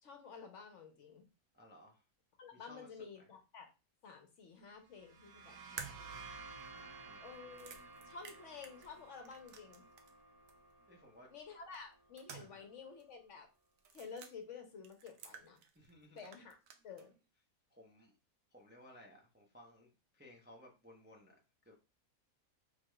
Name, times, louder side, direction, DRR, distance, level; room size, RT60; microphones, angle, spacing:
voice 1, 0.0-1.2 2.4-3.7 4.0-6.3 7.2-9.8 11.3-13.5 13.9-15.6 16.1-16.6 16.8-17.1, left 5 dB, 60° left, 5 dB, 1.0 m, -52 dB
voice 2, 1.5-2.0 2.5-3.0 6.7-7.2 10.9-11.3 12.4-12.6 15.7-16.3 17.7-18.1 18.5-21.3 21.6-21.8, left 1 dB, 10° right, -1 dB, 0.5 m, -59 dB
sound 1, 4.9-12.5, right 4 dB, 85° right, 1.2 m, -55 dB
sound 2, 5.8-10.2 10.5-10.6 11.7-12.7 13.0-13.1 13.8-14.3 14.8-15.9 16.2-17.1, right 6 dB, 70° right, 1.0 m, -52 dB
4.7 x 3.6 x 2.3 m, 0.30 s
omnidirectional pair, 1.5 m